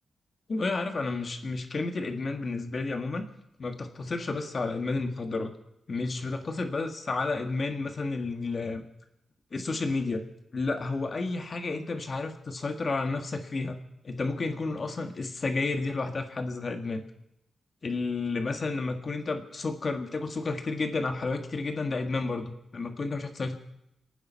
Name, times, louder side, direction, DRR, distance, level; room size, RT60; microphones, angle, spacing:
voice 1, 0.5-3.2 3.6-5.5 5.9-8.8 9.5-10.2 10.5-17.0 17.8-23.5, left 3 dB, 45° left, 5 dB, 1.9 m, -31 dB
27.0 x 9.3 x 5.8 m, 0.82 s
cardioid pair, 95°, 0 cm